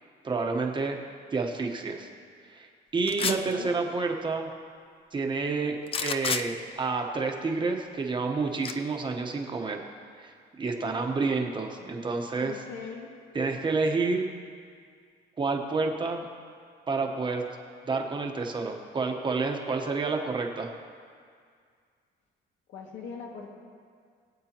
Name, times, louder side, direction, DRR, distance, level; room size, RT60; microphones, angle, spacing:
voice 1, 0.2-1.0 1.3-2.1 2.5-2.7 2.9-4.5 5.1-9.8 10.2-12.6 13.3-14.3 15.4-16.3 16.9-17.4 17.9-20.7, right 4 dB, 25° right, 2 dB, 1.1 m, -29 dB
voice 2, 3.0-3.7 10.7-11.0 12.4-13.1 22.7-23.5, left 5 dB, 85° left, -1 dB, 2.1 m, -41 dB
sound 1, 3.1-3.5 5.9-6.4 8.6-8.7, left 6 dB, 30° left, 0.5 m, -29 dB
23.0 x 8.4 x 3.0 m, 2.1 s
cardioid pair, 145°, 19 cm